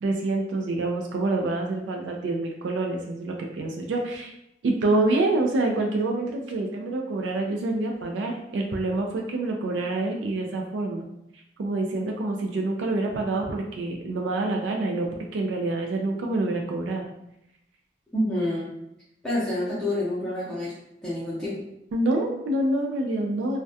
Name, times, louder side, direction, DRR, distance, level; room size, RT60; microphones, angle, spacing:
voice 1, 0.0-4.3 4.6-11.1 11.6-17.1 21.9-23.6, right 2 dB, 80° right, 1 dB, 0.3 m, -27 dB
voice 2, 18.1-18.7 19.2-20.7 21.0-21.6, left 1 dB, 5° left, -11 dB, 0.5 m, -27 dB
2.2 x 2.1 x 2.6 m, 0.83 s
head